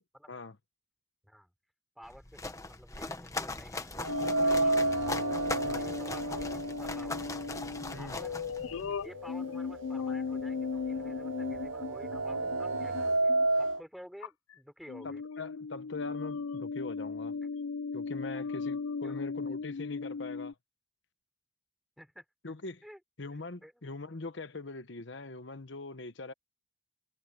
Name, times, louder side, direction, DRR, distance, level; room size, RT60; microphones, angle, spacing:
sound 1, 2.0-9.0, left 2 dB, 15° left, 1.1 m, -40 dB
voice 1, 2.0-4.1 4.4-5.0 5.6-7.4 8.0-8.4 8.9-13.3 13.6-15.2 18.3-18.5 19.0-19.2 22.0-22.2 22.8-23.0 23.3-23.7, equal, ahead, 4.5 m, -51 dB
sound 2, 4.0-8.1 8.4-8.5 9.5-9.6 10.0-13.8, right 2 dB, 70° right, 0.8 m, -31 dB
sound 3, 4.1-13.5 14.2-14.5 14.9-20.5, left 5 dB, 85° left, 0.4 m, -37 dB
voice 2, 15.0-17.3 17.9-20.5 22.4-22.8 23.2-26.3, left 3 dB, 60° left, 1.0 m, -42 dB
head